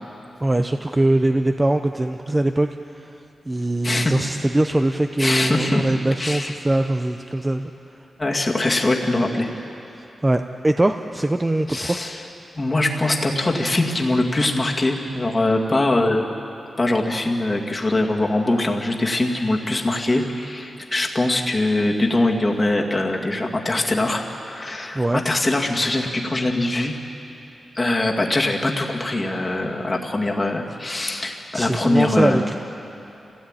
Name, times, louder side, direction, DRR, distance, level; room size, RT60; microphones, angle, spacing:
voice 1, 0.4-3.2 3.5-7.6 10.0-12.0 24.9-25.2 31.5-32.6, right 1 dB, 15° right, 6 dB, 0.6 m, -22 dB
voice 2, 5.2-5.8 6.2-6.5 8.2-9.5 11.7-12.2 12.6-16.3 16.8-26.9 27.8-32.4, left 2 dB, 20° left, 1 dB, 2.1 m, -22 dB
28.5 x 17.0 x 9.0 m, 2.9 s
wide cardioid pair, 170°, 0 cm